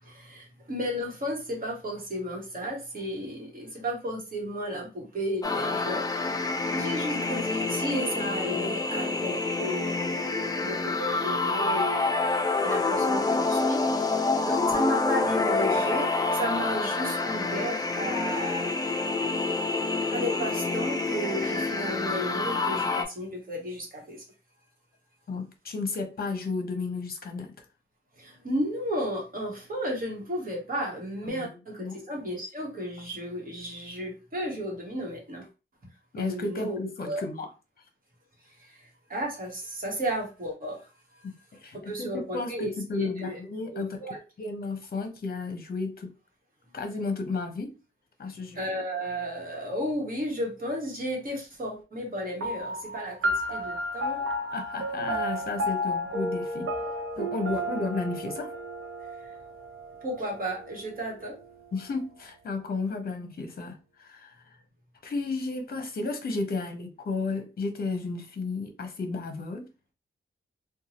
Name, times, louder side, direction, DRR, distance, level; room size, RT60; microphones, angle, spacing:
voice 1, 0.0-12.1 12.6-14.2 14.4-18.7 20.1-24.2 28.2-35.5 36.2-36.8 37.0-37.2 38.4-40.9 41.2-41.3 41.9-43.4 43.7-44.2 48.5-54.2 59.2-59.3 60.0-61.4, equal, 45° right, 1.2 m, -34 dB
sound 1, 5.4-23.0, left 3 dB, 20° left, 0.4 m, -27 dB
voice 2, 25.3-27.5 31.3-31.5 31.8-32.0 36.1-37.5 41.5-43.9 44.4-46.1 46.7-47.7 48.2-48.6 53.7-54.0 54.5-56.7 57.2-58.5 61.7-64.3 65.0-69.7, left 3 dB, 45° left, 0.7 m, -33 dB
sound 2, 52.4-61.2, equal, 80° right, 0.6 m, -32 dB
2.6 x 2.2 x 2.9 m
wide cardioid pair, 120°, 21 cm